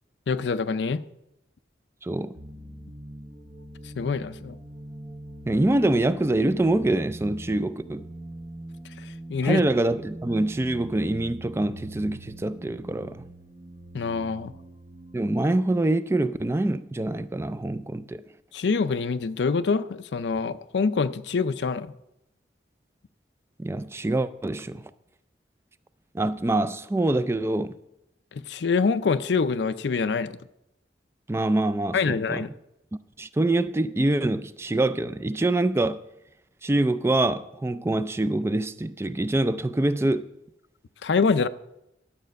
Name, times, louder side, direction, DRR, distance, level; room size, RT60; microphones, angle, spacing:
voice 1, 0.3-1.0 4.0-4.6 9.0-9.6 13.9-14.5 18.5-21.9 28.3-30.4 31.9-32.5 41.0-41.5, left 4 dB, 80° left, 0.5 m, -25 dB
voice 2, 2.0-2.3 5.5-8.1 9.4-13.2 15.1-18.2 23.6-24.9 26.1-27.7 31.3-32.4 33.2-36.0 36.6-40.3, right 2 dB, 15° right, 0.3 m, -25 dB
sound 1, 2.4-15.3, right 1 dB, 35° right, 0.9 m, -43 dB
11.5 x 7.4 x 5.2 m
head